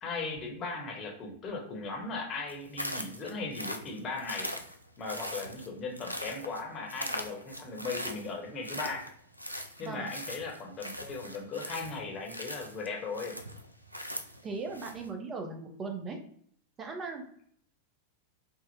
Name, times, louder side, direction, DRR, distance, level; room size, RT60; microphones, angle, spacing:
voice 1, 0.0-4.5 5.0-9.0 9.8-13.4, left 3 dB, 30° left, 1 dB, 0.9 m, -38 dB
sound 1, 2.5-15.1, equal, 90° right, 0.3 m, -40 dB
voice 2, 14.4-16.2 16.8-17.2, right 4 dB, 25° right, 3 dB, 0.6 m, -38 dB
3.5 x 2.1 x 2.7 m, 0.63 s
figure-of-eight pair, 90°, 0 cm